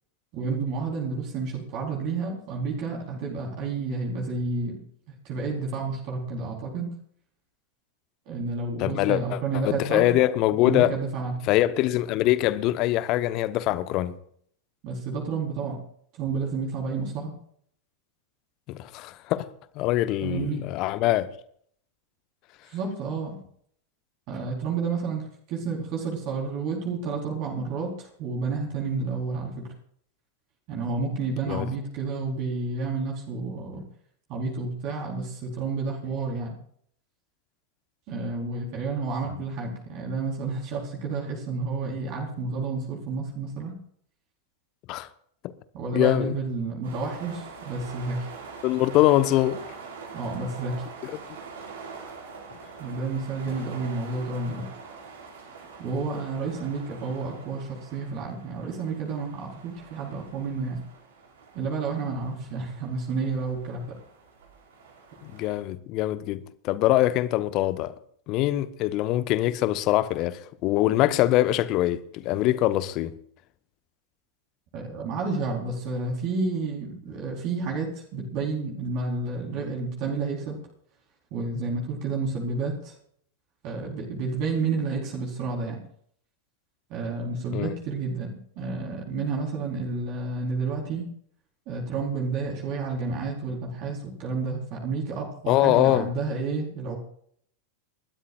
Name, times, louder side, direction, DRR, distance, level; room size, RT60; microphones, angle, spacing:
voice 1, 0.3-4.8 5.2-6.9 8.3-10.1 10.6-11.4 14.8-15.8 16.1-17.3 20.2-20.6 22.7-23.4 24.3-29.7 30.7-33.8 34.3-36.5 38.1-43.8 45.7-48.2 50.1-50.9 52.8-54.7 55.8-60.8 61.5-63.9 74.7-80.6 81.3-82.9 83.6-85.8 86.9-88.3 88.6-91.1 91.7-97.0, right 4 dB, 40° right, 4.2 m, -30 dB
voice 2, 8.8-9.4 9.6-10.9 11.5-14.2 18.7-19.5 19.7-21.3 31.5-31.7 44.9-45.1 45.9-46.3 48.6-49.6 51.0-51.1 65.2-67.9 68.3-73.1 87.5-87.7 95.5-96.1, left 15 dB, 40° left, 1.1 m, -23 dB
sound 1, 46.8-65.6, right 5 dB, 60° right, 5.1 m, -44 dB
28.5 x 13.0 x 2.5 m
figure-of-eight pair, 90°, 0 cm